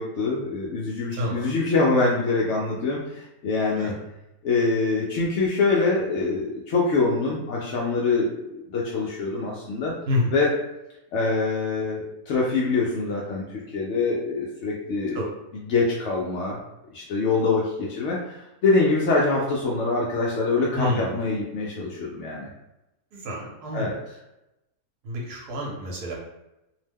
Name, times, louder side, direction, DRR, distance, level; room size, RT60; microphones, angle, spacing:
voice 1, 0.0-3.9 4.4-9.9 10.3-10.5 11.1-15.2 15.6-16.6 16.9-22.5 23.7-23.9, left 3 dB, 70° left, -4 dB, 0.7 m, -24 dB
voice 2, 1.1-1.5 3.8-3.9 10.1-10.3 15.1-15.3 20.7-21.1 23.1-24.0 25.0-26.1, left 2 dB, 80° right, -2 dB, 1.2 m, -28 dB
2.7 x 2.1 x 3.4 m, 0.92 s
omnidirectional pair, 1.7 m